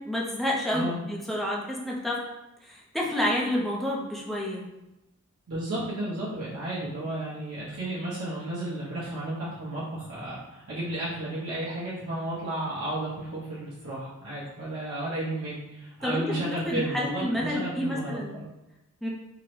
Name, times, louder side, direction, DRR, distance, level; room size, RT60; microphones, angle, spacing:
voice 1, 0.0-2.2 2.6-4.6 16.0-18.3 19.0-19.1, left 1 dB, ahead, -3 dB, 0.4 m, -29 dB
voice 2, 5.5-18.5, right 1 dB, 70° right, -9 dB, 0.8 m, -33 dB
3.7 x 2.0 x 3.1 m, 0.95 s
head